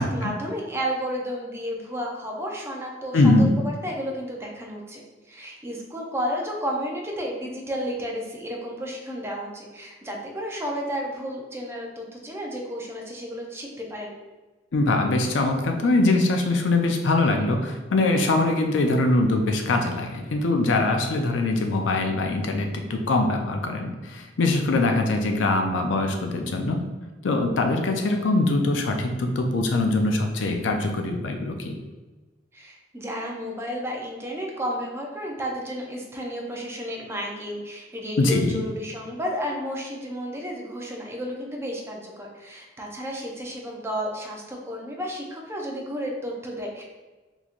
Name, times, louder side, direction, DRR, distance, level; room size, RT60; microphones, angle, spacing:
voice 1, 0.0-14.1 32.5-46.8, equal, 15° right, -1 dB, 0.5 m, -32 dB
voice 2, 3.1-3.5 14.7-26.8 27.2-31.8 38.2-38.6, left 2 dB, 85° left, 4 dB, 0.5 m, -22 dB
3.8 x 2.9 x 2.5 m, 1.2 s
head